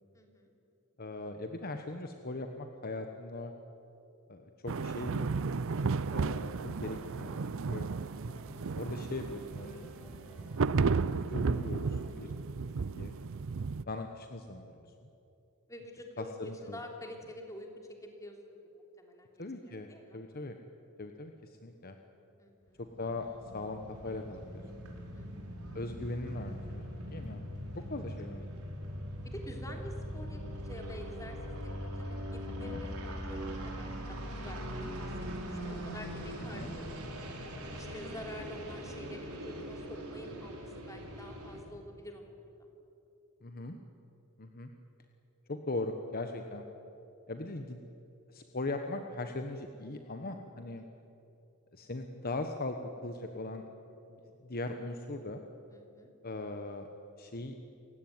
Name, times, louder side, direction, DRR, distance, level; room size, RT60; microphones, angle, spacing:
voice 1, 0.1-0.5 8.3-8.5 12.8-13.1 15.7-17.7 18.0-19.5 19.9-20.2 22.4-22.8 25.1-25.5 27.7-27.9 29.3-31.4 31.6-37.1 37.7-42.3 55.7-56.1, left 1 dB, 15° left, 2 dB, 3.3 m, -48 dB
voice 2, 1.0-3.5 4.3-5.3 6.1-7.9 8.8-9.9 11.1-12.3 12.9-13.1 13.9-15.1 16.2-16.8 19.4-20.6 21.0-22.0 23.0-23.3 23.5-24.8 25.7-27.4 27.9-28.4 32.6-32.8 36.4-36.7 43.4-43.8 44.4-44.7 45.5-46.6 47.3-47.8 48.3-50.8 51.7-52.8 53.0-53.6 54.2-55.4 56.2-56.9 57.2-57.5, left 2 dB, 45° left, 6 dB, 1.2 m, -40 dB
sound 1, 4.7-13.8, right 4 dB, 60° right, 0.5 m, -33 dB
sound 2, 5.2-12.1, equal, 5° right, 5.0 m, -52 dB
sound 3, 22.8-41.6, equal, 85° right, 4.6 m, -41 dB
28.5 x 16.5 x 9.5 m, 2.9 s
head